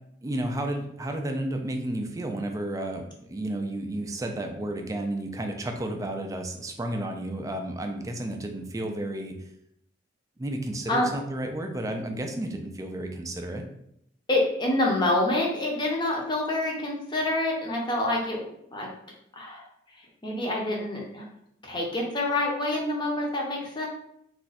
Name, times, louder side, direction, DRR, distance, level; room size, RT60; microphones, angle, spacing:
voice 1, 0.2-9.3 10.4-13.6, right 1 dB, 20° right, 4 dB, 0.3 m, -32 dB
voice 2, 14.3-18.5 18.7-18.9 19.4-19.6 20.2-21.3 21.6-23.9, left 1 dB, 25° left, -1 dB, 0.6 m, -27 dB
2.4 x 2.3 x 4.0 m, 0.73 s
head